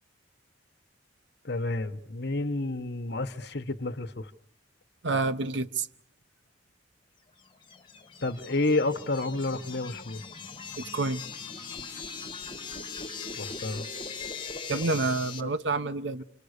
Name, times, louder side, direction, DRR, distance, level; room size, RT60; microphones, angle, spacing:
voice 1, 1.4-4.3 8.2-10.2 13.3-13.9 15.4-15.5, left 2 dB, 55° left, 1.3 m, -30 dB
voice 2, 5.0-5.9 10.8-11.2 14.7-16.2, right 3 dB, 65° right, 1.0 m, -28 dB
sound 1, 7.4-15.4, left 5 dB, 25° left, 1.9 m, -40 dB
29.0 x 27.0 x 6.7 m
head